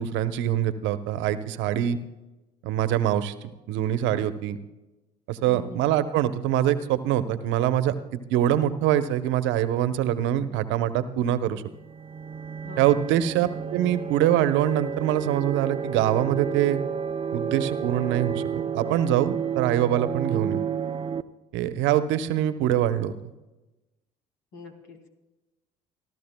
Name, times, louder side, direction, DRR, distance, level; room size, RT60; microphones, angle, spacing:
voice 1, 0.0-2.0 2.6-4.6 5.3-7.9 8.3-11.6 12.8-16.8 17.3-20.6 21.5-23.3, right 11 dB, 70° right, 11 dB, 0.9 m, -24 dB
voice 2, 5.4-5.9 12.6-13.0 20.3-20.8 24.5-25.1, equal, 65° left, 3 dB, 3.0 m, -42 dB
sound 1, 11.6-21.2, right 7 dB, 30° right, 0.6 m, -31 dB
28.0 x 12.5 x 2.2 m, 1.0 s
hypercardioid pair, 60°, 20 cm